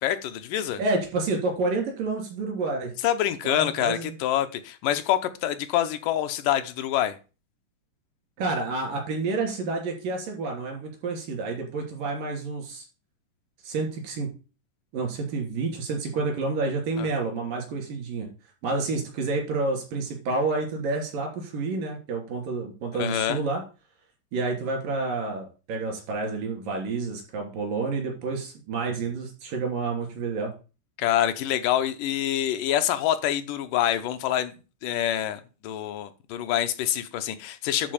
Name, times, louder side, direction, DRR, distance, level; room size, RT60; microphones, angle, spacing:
voice 1, 0.0-0.8 3.0-7.1 17.0-17.1 23.0-23.4 31.0-34.5 34.8-37.9, left 11 dB, 80° left, 2.4 m, -26 dB
voice 2, 0.8-2.9 3.4-4.2 8.4-12.8 13.6-14.3 14.9-18.3 18.6-23.6 24.3-30.5, right 3 dB, 85° right, 4.6 m, -29 dB
11.0 x 4.3 x 7.1 m
omnidirectional pair, 3.8 m